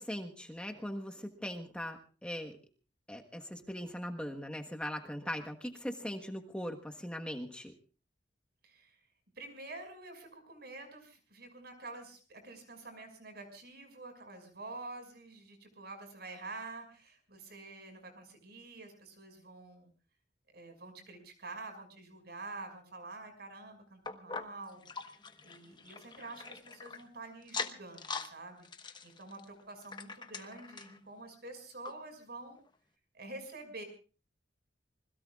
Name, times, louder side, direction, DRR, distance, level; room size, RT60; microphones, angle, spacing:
voice 1, 0.0-2.6 3.1-7.7, equal, 5° left, 3 dB, 1.3 m, -40 dB
voice 2, 8.6-9.0 9.4-19.9 20.5-24.8 25.4-32.6 33.1-33.8, right 2 dB, 60° right, 6 dB, 5.8 m, -48 dB
sound 1, 24.1-27.0 27.4-28.3 28.6-31.0 31.5-31.6 31.8-31.9 32.6-32.7, left 4 dB, 25° left, 1.2 m, -43 dB
27.0 x 21.0 x 2.4 m, 0.37 s
head